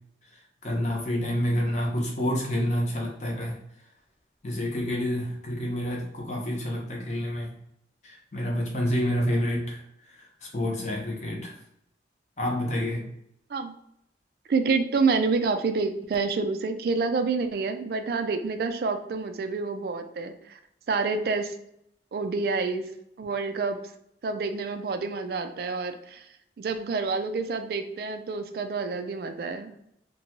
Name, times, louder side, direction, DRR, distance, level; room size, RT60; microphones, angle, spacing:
voice 1, 0.6-3.6 4.4-7.5 8.0-9.8 10.1-11.6 12.4-13.1, equal, 40° left, -1 dB, 0.7 m, -28 dB
voice 2, 14.5-20.6 20.9-21.6 22.1-22.9 23.2-23.8 24.2-26.3 26.6-29.7, right 4 dB, 55° right, 7 dB, 0.3 m, -28 dB
2.8 x 2.2 x 2.8 m, 0.75 s
head